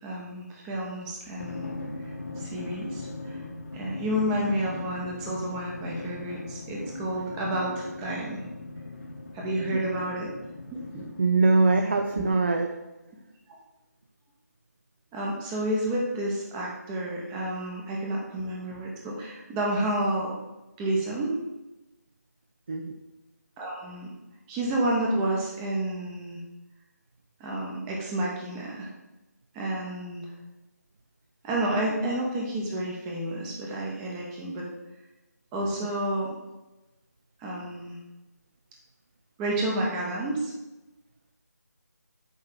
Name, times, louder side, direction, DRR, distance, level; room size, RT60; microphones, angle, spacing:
voice 1, 0.0-1.7 2.4-3.4 3.7-8.4 9.3-10.3 10.7-11.0 12.2-12.3 15.1-20.3 20.8-21.4 23.6-24.1 24.5-26.4 27.4-28.9 29.5-30.3 31.4-34.7 35.5-36.3 37.4-38.0 39.4-40.5, right 1 dB, 10° right, -2 dB, 0.9 m, -30 dB
Drum, 1.4-12.4, left 2 dB, 55° left, 1.3 m, -39 dB
voice 2, 11.2-12.7 22.7-22.9 35.8-35.9, right 3 dB, 40° right, 4 dB, 0.5 m, -22 dB
8.9 x 3.2 x 6.2 m, 1.0 s
figure-of-eight pair, 160°, 9 cm